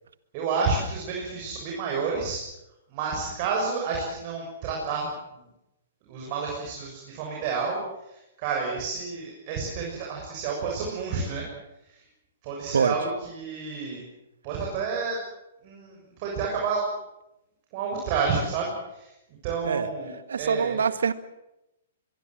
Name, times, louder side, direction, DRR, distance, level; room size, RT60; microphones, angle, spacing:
voice 1, 0.3-2.4 2.9-5.1 6.1-7.8 8.1-11.5 11.9-12.0 12.4-14.0 14.4-15.2 15.6-16.9 17.7-19.1 19.4-20.8, right 4 dB, 40° right, -1 dB, 7.2 m, -30 dB
voice 2, 20.3-21.1, right 6 dB, 70° right, 13 dB, 1.7 m, -24 dB
24.0 x 22.5 x 7.9 m, 0.90 s
figure-of-eight pair, 115°, 0 cm